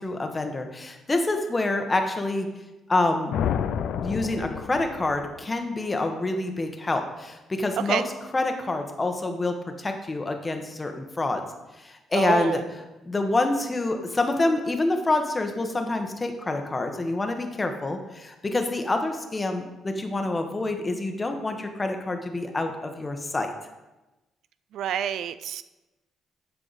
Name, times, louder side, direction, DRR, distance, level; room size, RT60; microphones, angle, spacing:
voice 1, 0.0-2.5 2.9-3.3 3.9-11.4 11.8-12.6 13.0-23.5, left 2 dB, 25° left, 5 dB, 1.2 m, -27 dB
sound 1, 3.3-5.3, left 8 dB, 80° left, 0.4 m, -29 dB
voice 2, 12.1-12.6 24.7-25.6, right 9 dB, 75° right, 14 dB, 0.3 m, -28 dB
12.5 x 4.8 x 4.1 m, 1.0 s
cardioid pair, 90°, 0 cm